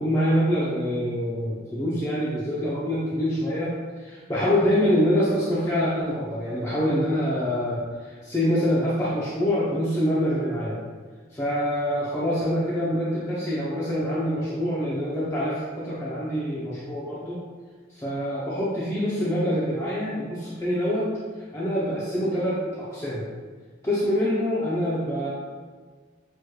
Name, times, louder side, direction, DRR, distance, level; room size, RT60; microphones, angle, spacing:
voice 1, 0.0-10.8 11.3-17.4 17.9-21.1 21.5-23.2 23.8-25.3, equal, 15° left, -9 dB, 0.6 m, -25 dB
6.1 x 3.1 x 2.3 m, 1.5 s
head